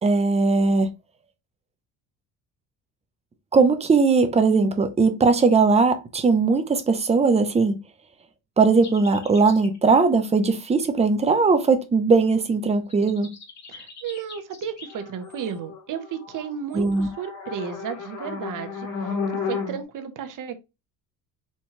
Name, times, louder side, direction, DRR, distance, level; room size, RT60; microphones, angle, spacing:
voice 1, 0.0-0.9 3.5-7.8 8.6-13.3 16.7-17.1, right 4 dB, 15° right, 0.5 m, -19 dB
sound 1, 8.8-9.8 12.9-19.8, left 5 dB, 40° left, 1.3 m, -34 dB
voice 2, 13.7-18.9 19.5-20.6, right 8 dB, 50° right, 0.8 m, -33 dB
4.3 x 2.2 x 3.0 m
cardioid pair, 120°, 41 cm